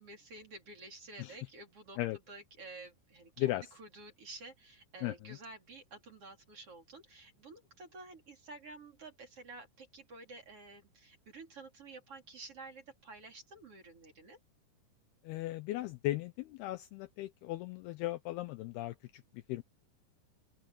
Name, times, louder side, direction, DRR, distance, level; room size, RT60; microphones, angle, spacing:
voice 1, 0.0-2.0 2.3-14.4, right 3 dB, 35° right, 4.0 m, -51 dB
voice 2, 15.2-19.6, left 16 dB, 80° left, 2.4 m, -37 dB
open air
omnidirectional pair, 5.0 m